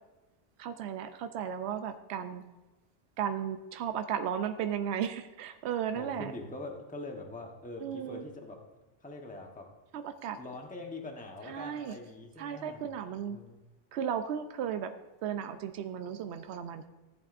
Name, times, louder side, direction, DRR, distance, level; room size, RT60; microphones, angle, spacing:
voice 1, 0.6-2.4 3.2-6.3 7.8-8.2 9.9-10.4 11.5-11.9 12.4-13.4 13.9-14.9 15.2-16.9, right 8 dB, 75° right, 8 dB, 0.8 m, -35 dB
voice 2, 5.9-8.6 9.0-9.7 10.4-12.8 13.3-13.6, left 2 dB, 10° left, 2 dB, 0.9 m, -43 dB
15.0 x 8.4 x 2.5 m, 1.1 s
omnidirectional pair, 1.1 m